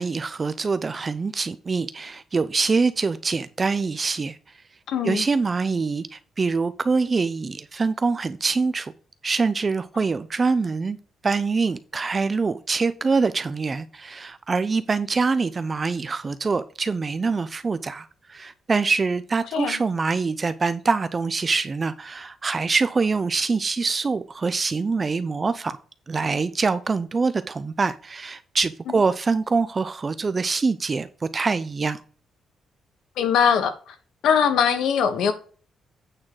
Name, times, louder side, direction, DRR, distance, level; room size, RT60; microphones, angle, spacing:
voice 1, 0.0-4.4 5.0-8.9 9.2-11.0 11.2-25.8 26.1-31.1 31.3-32.0, right 4 dB, 25° right, 0.4 m, -24 dB
voice 2, 4.9-5.3 19.5-19.8 33.2-33.9 34.2-35.3, left 7 dB, 85° left, 1.2 m, -21 dB
8.7 x 3.8 x 6.1 m
cardioid pair, 155°, 0 cm